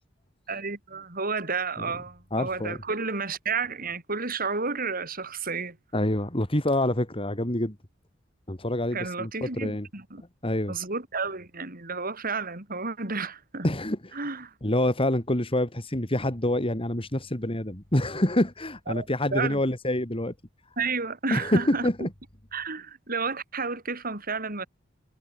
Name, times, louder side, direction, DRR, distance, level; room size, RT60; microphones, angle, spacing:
voice 1, 0.5-5.8 8.9-10.2 10.7-13.7 14.1-14.5 18.9-19.6 20.8-22.1 22.5-24.7, right 4 dB, 50° right, 5.9 m, -31 dB
voice 2, 2.3-2.8 5.9-7.8 8.5-9.9 10.4-10.7 13.6-14.2 14.6-20.3 21.3-22.1, left 1 dB, 30° left, 3.3 m, -26 dB
head